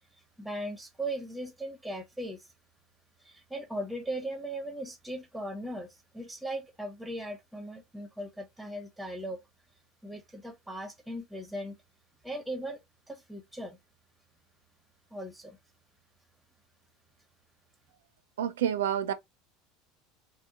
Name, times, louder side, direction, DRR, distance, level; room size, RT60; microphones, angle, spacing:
voice 1, 0.4-2.5 3.2-9.4 10.0-11.8 12.2-12.8 13.1-13.8 15.1-15.6, right 1 dB, 5° right, 0.9 m, -38 dB
voice 2, 18.4-19.1, right 9 dB, 75° right, 0.3 m, -28 dB
2.8 x 2.1 x 2.3 m
hypercardioid pair, 75°, 0 cm